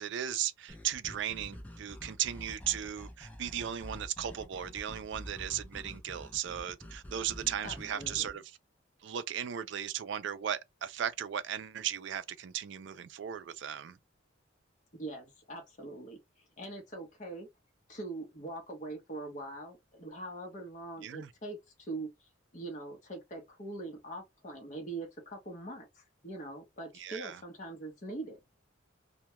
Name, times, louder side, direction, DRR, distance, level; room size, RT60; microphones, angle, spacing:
voice 1, 0.0-8.4 9.0-14.0 21.0-21.3 26.9-27.4, right 10 dB, 65° right, 0.3 m, -36 dB
sound 1, 0.7-8.3, equal, 10° left, 0.4 m, -47 dB
voice 2, 7.6-8.3 14.9-17.5 17.9-28.4, right 2 dB, 40° left, 0.8 m, -43 dB
2.2 x 2.2 x 2.8 m
head